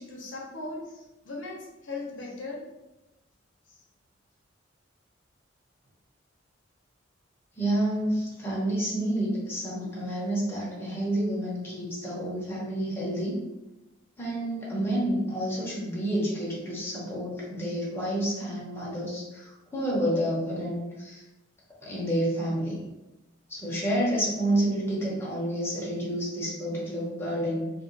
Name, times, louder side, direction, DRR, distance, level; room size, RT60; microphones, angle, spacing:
voice 1, 0.0-2.7, left 3 dB, 70° left, -2 dB, 0.7 m, -38 dB
voice 2, 7.6-13.4 14.2-21.2 21.8-22.8 23.5-27.7, right 1 dB, 10° left, -6 dB, 0.9 m, -29 dB
2.6 x 2.4 x 3.8 m, 0.99 s
head